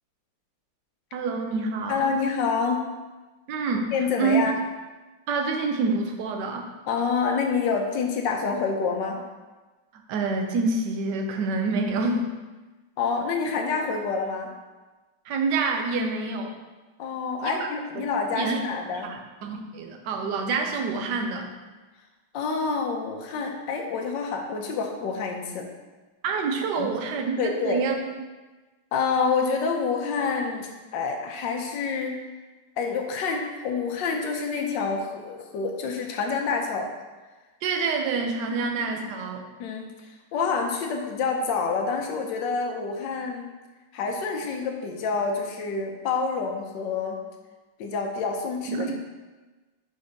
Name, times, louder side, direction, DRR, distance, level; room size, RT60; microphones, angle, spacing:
voice 1, 1.1-2.1 3.5-3.9 4.2-4.5 5.3-6.7 9.9-12.3 15.2-16.5 17.4-17.7 17.9-18.1 18.4-18.6 19.0-21.5 26.2-28.2 37.6-39.4 48.7-48.9, right 4 dB, 65° right, 3 dB, 1.2 m, -27 dB
voice 2, 1.9-2.8 3.9-4.5 6.9-9.2 13.0-14.5 17.0-19.1 22.3-25.7 26.8-26.9 27.4-27.8 28.9-32.2 32.8-36.9 38.5-38.6 39.6-43.5 43.9-47.2 47.8-48.9, left 5 dB, 65° left, 2 dB, 1.4 m, -27 dB
5.5 x 4.4 x 5.2 m, 1.2 s
omnidirectional pair, 2.4 m